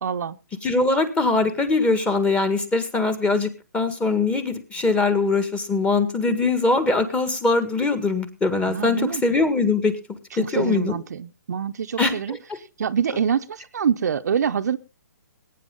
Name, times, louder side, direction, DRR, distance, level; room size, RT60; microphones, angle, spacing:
voice 1, 0.0-0.4 8.7-9.2 10.4-12.4 12.8-14.8, right 7 dB, 65° right, 9 dB, 0.8 m, -25 dB
voice 2, 0.6-10.0 10.4-11.0 12.0-12.4, left 3 dB, 10° left, 10 dB, 1.7 m, -22 dB
21.0 x 9.4 x 3.8 m, 0.33 s
hypercardioid pair, 140°, 10 cm